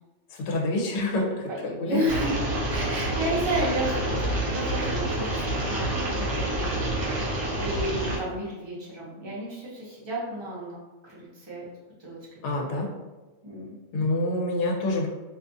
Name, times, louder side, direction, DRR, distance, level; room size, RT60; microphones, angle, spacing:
voice 1, 0.3-1.5 1.8-2.0 12.4-12.9 13.9-15.1, left 2 dB, 70° left, -1 dB, 0.9 m, -26 dB
voice 2, 1.5-2.4 2.7-6.7 7.6-10.8 11.0-11.7 12.0-12.2 12.5-13.0 13.4-13.8, right 1 dB, 30° right, -7 dB, 0.6 m, -32 dB
sound 1, 2.1-8.2, right 1 dB, 65° right, 0.9 m, -28 dB
2.4 x 2.4 x 2.6 m, 1.2 s
omnidirectional pair, 1.3 m